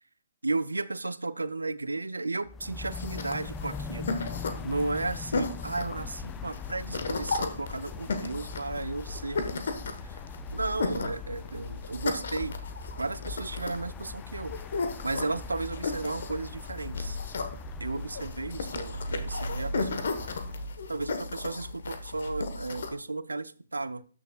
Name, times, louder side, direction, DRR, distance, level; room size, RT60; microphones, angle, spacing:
voice 1, 0.4-4.1 4.6-9.7 10.0-10.2 10.5-12.6 13.0-14.6 15.0-17.2 17.8-20.3 20.9-24.0, right 3 dB, 85° right, 15 dB, 0.5 m, -34 dB
sound 1, 2.5-20.8, left 6 dB, 15° left, 0.4 m, -42 dB
sound 2, 2.9-22.9, left 3 dB, 60° left, 1.2 m, -35 dB
12.5 x 6.5 x 2.3 m, 0.41 s
figure-of-eight pair, 135°, 0 cm